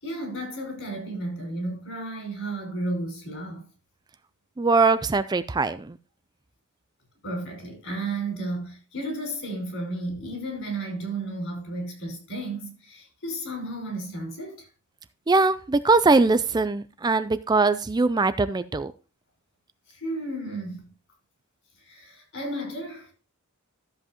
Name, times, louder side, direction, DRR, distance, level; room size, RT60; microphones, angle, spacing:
voice 1, 0.0-3.7 4.8-5.0 7.2-14.7 19.9-20.9 21.8-23.1, right 1 dB, 60° left, 5.4 m, -33 dB
voice 2, 4.6-6.0 15.3-18.9, right 3 dB, 20° right, 0.4 m, -21 dB
13.5 x 7.7 x 3.0 m
head